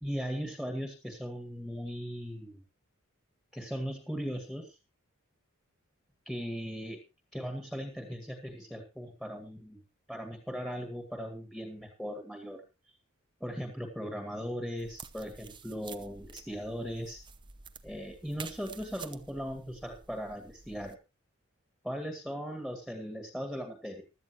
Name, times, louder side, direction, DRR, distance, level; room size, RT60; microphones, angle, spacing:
voice 1, 0.0-2.6 3.5-4.8 6.3-7.0 7.3-9.8 10.1-12.6 13.4-17.2 17.8-21.0 21.8-24.0, equal, ahead, 4 dB, 1.9 m, -38 dB
sound 1, 14.8-20.9, right 5 dB, 20° right, 0.8 m, -50 dB
16.0 x 12.5 x 3.1 m, 0.28 s
head